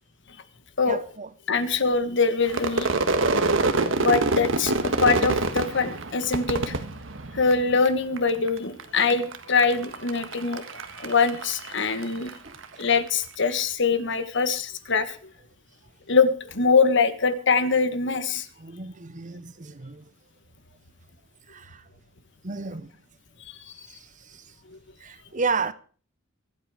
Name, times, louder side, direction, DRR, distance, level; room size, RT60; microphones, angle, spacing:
voice 1, 0.8-1.3 12.4-12.6 18.6-20.1 21.5-21.8 22.4-22.9 23.9-24.5 25.0-25.7, right 4 dB, 40° right, 0.9 m, -32 dB
voice 2, 1.5-2.9 3.9-6.7 7.3-10.6 11.0-12.3 12.8-15.3 16.1-18.5 23.4-23.7 24.7-24.8, left 4 dB, 65° left, 1.5 m, -23 dB
Crowd / Fireworks, 2.5-7.9 8.2-8.8 9.1-12.6, right 3 dB, 70° right, 1.5 m, -26 dB
24.0 x 8.3 x 5.0 m
head